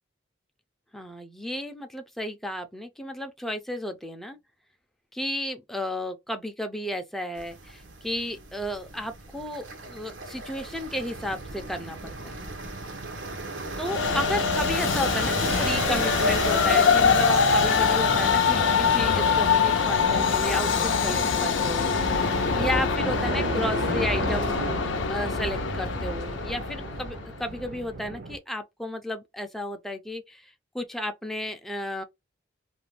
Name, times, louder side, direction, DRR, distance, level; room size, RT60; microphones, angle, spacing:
voice 1, 0.9-4.4 5.1-12.4 13.8-22.3 22.5-24.6 25.1-32.0, left 1 dB, ahead, 0.4 m, -33 dB
sound 1, 7.4-22.9, right 2 dB, 85° right, 0.7 m, -37 dB
Train, 13.8-27.3, left 5 dB, 85° left, 0.5 m, -24 dB
sound 2, 16.8-28.4, right 2 dB, 55° right, 0.5 m, -36 dB
2.5 x 2.1 x 3.1 m
head